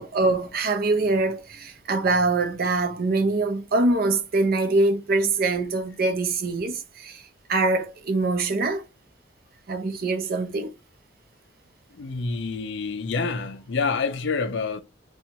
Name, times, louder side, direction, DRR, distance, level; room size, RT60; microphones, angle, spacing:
voice 1, 0.0-7.2 7.5-8.8 9.7-10.7, right 3 dB, 55° right, 0.6 m, -24 dB
voice 2, 11.9-14.8, left 4 dB, 70° left, 0.5 m, -27 dB
4.3 x 2.3 x 2.7 m
head